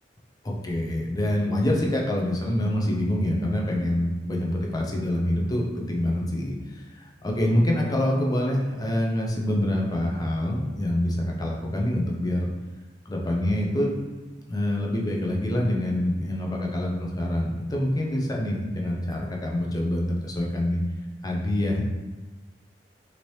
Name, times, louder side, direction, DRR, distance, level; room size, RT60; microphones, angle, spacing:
voice 1, 0.4-12.5 13.1-13.9 14.5-20.8 21.2-21.8, left 1 dB, 20° left, -1 dB, 0.4 m, -26 dB
2.8 x 2.7 x 3.1 m, 1.2 s
head